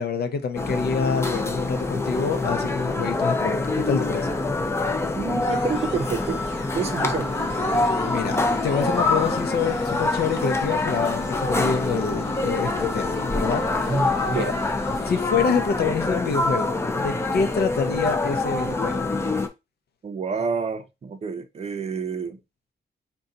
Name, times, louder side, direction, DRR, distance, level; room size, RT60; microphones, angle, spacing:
voice 1, 0.0-4.4 8.1-8.4 8.6-14.5 15.1-19.1, left 5 dB, 60° left, 0.6 m, -27 dB
sound 1, 0.6-19.5, left 2 dB, 15° left, 0.5 m, -25 dB
voice 2, 5.1-6.4 6.7-7.3 13.9-14.5 20.0-22.4, right 5 dB, 35° right, 0.6 m, -28 dB
sound 2, 5.4-7.2 7.5-10.6, left 5 dB, 80° left, 1.0 m, -45 dB
sound 3, 7.1-15.1, left 3 dB, 35° left, 2.3 m, -43 dB
3.9 x 2.3 x 3.9 m
wide cardioid pair, 180°, 18 cm